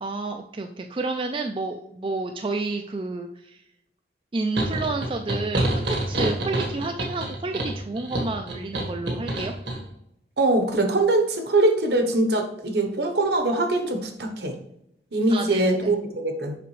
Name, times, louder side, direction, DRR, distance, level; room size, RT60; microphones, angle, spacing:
voice 1, 0.0-3.6 4.3-9.5 15.3-15.9, right 3 dB, 30° right, 5 dB, 0.3 m, -30 dB
sound 1, 4.6-9.8, right 1 dB, 85° right, 1.5 m, -27 dB
voice 2, 10.4-14.6 15.1-16.6, right 2 dB, 65° right, 6 dB, 1.0 m, -22 dB
6.8 x 5.1 x 3.2 m, 0.77 s
head